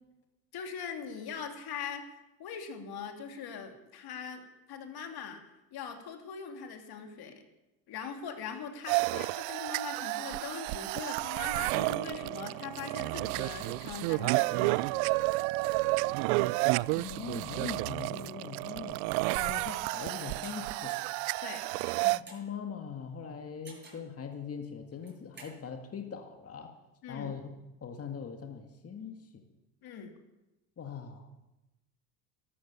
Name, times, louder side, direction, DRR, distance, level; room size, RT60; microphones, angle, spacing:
voice 1, 0.5-2.0 2.4-5.4 5.7-7.5 7.9-14.9 21.4-21.6 27.0-27.3 29.8-30.1, left 6 dB, 50° left, 5 dB, 2.9 m, -41 dB
sound 1, 8.9-22.2, right 23 dB, 65° right, 0.5 m, -31 dB
voice 2, 16.9-19.0 19.3-21.0 22.0-26.7 27.1-27.5 27.8-29.4 30.8-31.3, left 6 dB, 30° left, 4 dB, 1.9 m, -41 dB
sound 2, 20.4-20.5 20.9-21.1 21.7-22.5 23.6-24.1 24.9-25.5, right 3 dB, 25° right, 7.1 m, -51 dB
13.0 x 13.0 x 7.0 m, 0.99 s
hypercardioid pair, 80°, 47 cm